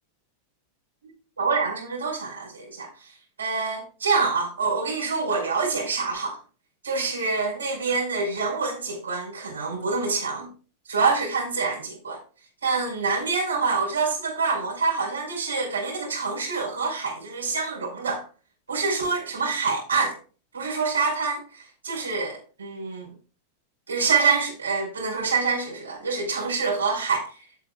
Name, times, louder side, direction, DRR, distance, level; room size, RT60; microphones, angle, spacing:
voice 1, 1.4-3.1 3.4-6.4 6.8-10.5 10.9-12.2 12.6-18.2 18.7-20.2 20.5-23.1 23.9-27.4, right 4 dB, 75° right, 5.0 m, -26 dB
15.5 x 6.7 x 2.4 m
figure-of-eight pair, 90°, 0 cm